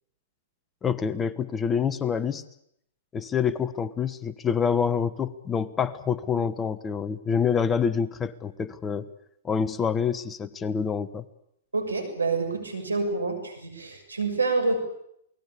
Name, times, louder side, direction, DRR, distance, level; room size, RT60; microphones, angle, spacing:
voice 1, 0.8-2.4 3.1-9.1 9.4-11.2, left 7 dB, 15° left, 13 dB, 1.3 m, -27 dB
voice 2, 11.7-14.8, right 3 dB, 90° right, 6 dB, 6.8 m, -27 dB
28.0 x 20.5 x 8.4 m, 0.74 s
hypercardioid pair, 115°, 0 cm